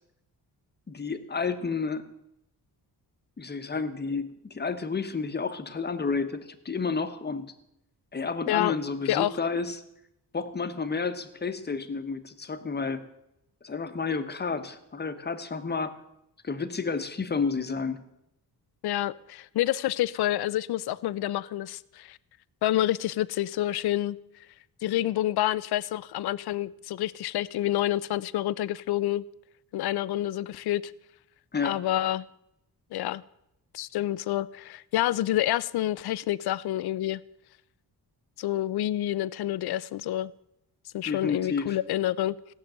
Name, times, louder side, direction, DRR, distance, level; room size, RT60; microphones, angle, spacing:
voice 1, 0.9-2.1 3.4-7.5 8.1-9.8 10.3-13.0 13.6-16.0 16.4-18.0 31.5-31.8 41.0-41.8, left 4 dB, 25° left, 1.0 m, -31 dB
voice 2, 18.8-22.2 22.6-24.2 24.8-29.2 29.7-30.9 31.6-32.2 32.9-33.2 33.7-37.2 38.4-40.3 40.9-42.3, left 13 dB, 70° left, 0.5 m, -28 dB
16.5 x 6.7 x 9.0 m
wide cardioid pair, 155°, 39 cm